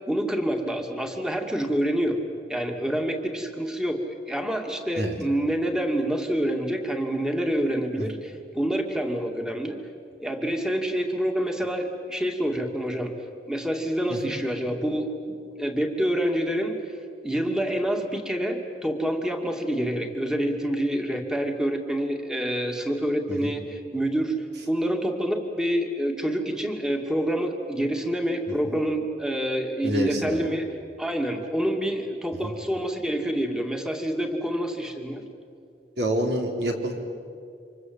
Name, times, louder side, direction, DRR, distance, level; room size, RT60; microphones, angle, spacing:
voice 1, 0.1-2.2 2.5-4.0 4.3-9.8 10.2-13.2 13.5-16.8 17.2-24.3 24.7-30.6 31.0-35.2, equal, 5° right, 3 dB, 2.4 m, -27 dB
voice 2, 29.8-30.5 32.3-32.5 36.0-37.0, equal, 70° right, 2 dB, 3.8 m, -28 dB
28.5 x 26.0 x 8.0 m, 2.5 s
head